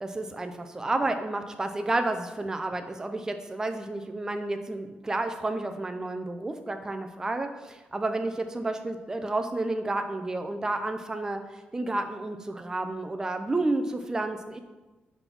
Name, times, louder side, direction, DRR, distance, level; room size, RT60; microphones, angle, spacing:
voice 1, 0.0-14.6, right 2 dB, 15° right, 6 dB, 0.5 m, -31 dB
5.2 x 4.1 x 6.0 m, 1.1 s
wide cardioid pair, 145°, 4 cm